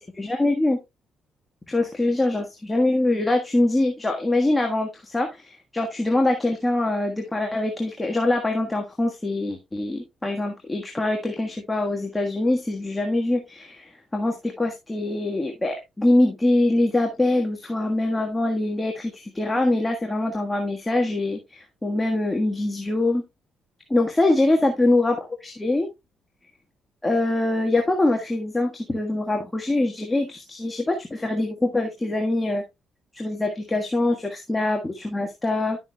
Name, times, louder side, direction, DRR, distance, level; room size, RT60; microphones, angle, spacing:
voice 1, 0.1-0.8 1.7-23.2 23.9-25.9 27.0-32.6 33.1-35.8, left 2 dB, 15° left, 2 dB, 1.5 m, -24 dB
11.0 x 7.0 x 2.3 m, 0.22 s
cardioid pair, 90°, 0 cm